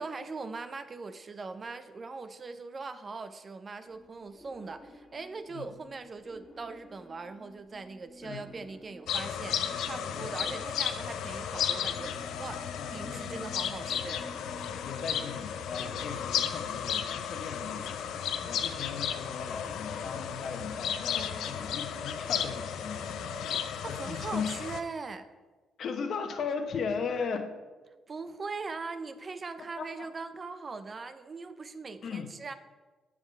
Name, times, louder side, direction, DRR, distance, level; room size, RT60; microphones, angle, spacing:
voice 1, 0.0-14.3 23.6-25.3 28.1-32.5, right 4 dB, 35° right, 11 dB, 0.5 m, -41 dB
sound 1, 3.9-23.6, equal, 20° left, 2.0 m, -51 dB
sound 2, 9.1-24.8, left 8 dB, 80° left, 0.5 m, -34 dB
voice 2, 10.2-10.5 12.8-13.5 14.8-23.4 23.7-24.5 25.8-27.6 29.8-30.1 32.0-32.3, left 5 dB, 65° left, 6 dB, 1.0 m, -37 dB
7.6 x 5.0 x 5.4 m, 1.3 s
cardioid pair, 90°, 0 cm